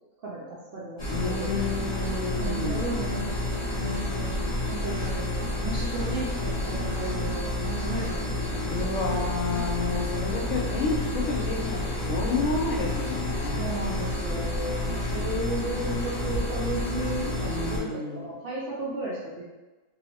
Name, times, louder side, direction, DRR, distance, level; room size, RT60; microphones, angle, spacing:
voice 1, 0.2-1.6 2.4-3.3 3.7-4.4 4.7-5.3 5.6-8.9 9.2-9.3 13.4-19.5, right 2 dB, 65° right, -7 dB, 0.5 m, -34 dB
sound 1, 1.0-17.8, left 1 dB, 25° left, 0.8 m, -30 dB
voice 2, 1.1-3.0 8.7-13.7 17.4-18.3, left 3 dB, 80° left, -1 dB, 1.0 m, -30 dB
2.8 x 2.0 x 2.8 m, 1.2 s
omnidirectional pair, 1.4 m